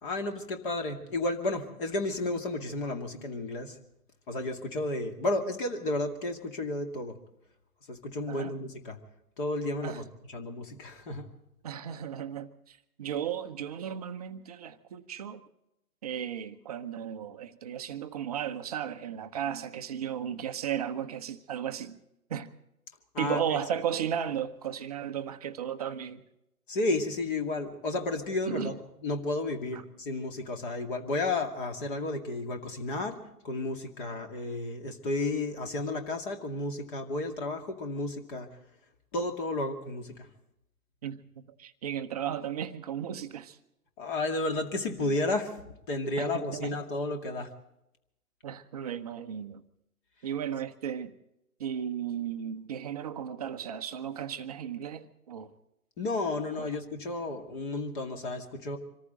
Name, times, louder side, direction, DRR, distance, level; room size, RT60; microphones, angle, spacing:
voice 1, 0.0-3.7 4.3-7.1 7.9-9.0 9.4-10.0 10.3-11.3 23.1-23.4 26.7-28.7 29.0-33.2 33.4-38.5 39.1-40.3 44.0-45.6 45.9-47.5 56.0-58.8, left 2 dB, 35° left, 2.3 m, -32 dB
voice 2, 11.6-15.4 16.0-22.0 22.3-22.5 23.2-26.2 28.5-28.8 29.7-29.8 41.0-41.2 41.6-43.6 46.2-46.8 48.4-49.6 50.2-51.1 51.6-55.5 56.6-56.7, right 9 dB, 25° right, 0.7 m, -35 dB
25.5 x 14.5 x 3.9 m
figure-of-eight pair, 130°, 45 cm